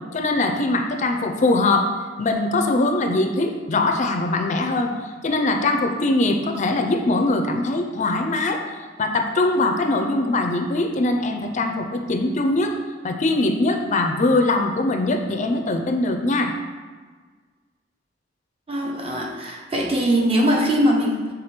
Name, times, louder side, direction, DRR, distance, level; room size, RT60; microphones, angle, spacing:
voice 1, 0.1-1.9 2.2-4.9 5.2-8.6 9.0-12.7 13.0-16.5, left 2 dB, 40° left, 4 dB, 0.5 m, -21 dB
voice 2, 18.7-21.3, equal, 30° right, -1 dB, 0.9 m, -21 dB
6.5 x 3.8 x 4.4 m, 1.5 s
head